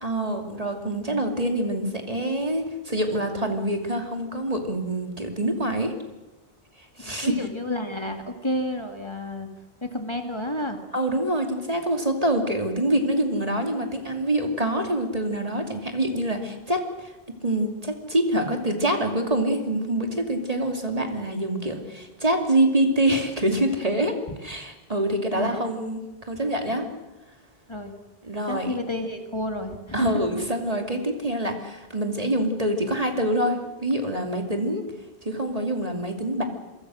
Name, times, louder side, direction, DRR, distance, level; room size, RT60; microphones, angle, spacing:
voice 1, 0.0-5.9 7.0-7.5 10.9-17.1 17.4-26.9 28.2-28.7 29.9-34.8 35.2-36.5, right 1 dB, 35° right, 4 dB, 2.8 m, -25 dB
voice 2, 7.0-9.5 9.8-10.8 25.3-25.6 27.7-27.9 28.5-30.4, left 1 dB, 25° left, 5 dB, 2.3 m, -30 dB
27.0 x 24.0 x 6.4 m, 1.1 s
omnidirectional pair, 1.1 m